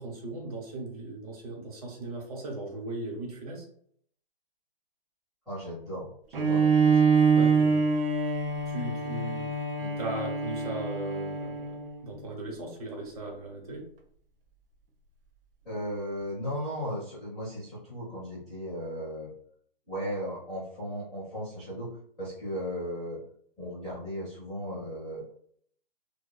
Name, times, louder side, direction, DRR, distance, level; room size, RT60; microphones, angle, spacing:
voice 1, 0.0-3.7 7.3-7.8 8.4-9.5 10.0-13.9, right 2 dB, 40° right, 0 dB, 0.9 m, -38 dB
voice 2, 5.5-7.0 9.8-9.9 15.6-19.3 19.9-21.9 22.2-23.2 23.6-25.2, equal, ahead, -11 dB, 0.4 m, -36 dB
Bowed string instrument, 6.3-12.0, right 5 dB, 70° right, 0.6 m, -25 dB
2.5 x 2.2 x 2.3 m, 0.62 s
hypercardioid pair, 145°, 29 cm